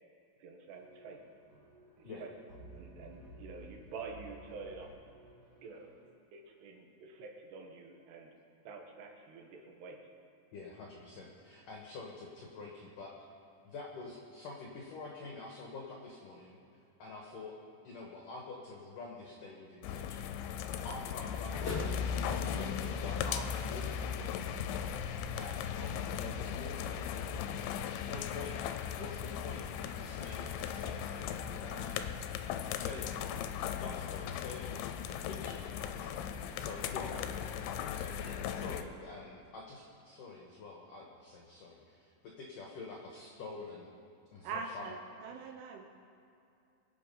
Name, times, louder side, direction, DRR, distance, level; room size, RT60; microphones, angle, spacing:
voice 1, 0.4-1.2 2.0-2.3 2.7-4.9 5.6-5.9 6.3-8.3 8.6-10.0, right 4 dB, 70° right, 2 dB, 3.0 m, -48 dB
sound 1, 0.7-6.1, right 1 dB, 45° right, 1.2 m, -55 dB
voice 2, 10.5-13.1 13.6-16.6 17.0-17.5 17.8-20.3 20.8-22.0 22.5-24.8 25.4-26.8 27.9-32.2 32.7-33.3 33.8-43.9 44.3-44.9, left 3 dB, 70° left, -1 dB, 2.1 m, -47 dB
sound 2, 19.8-38.8, left 8 dB, 85° left, 2.8 m, -38 dB
sound 3, 21.4-25.9, left 2 dB, 45° left, 0.8 m, -45 dB
voice 3, 44.4-45.0 45.2-45.8, right 5 dB, 85° right, 2 dB, 2.2 m, -41 dB
23.5 x 8.2 x 5.5 m, 2.6 s
omnidirectional pair, 5.7 m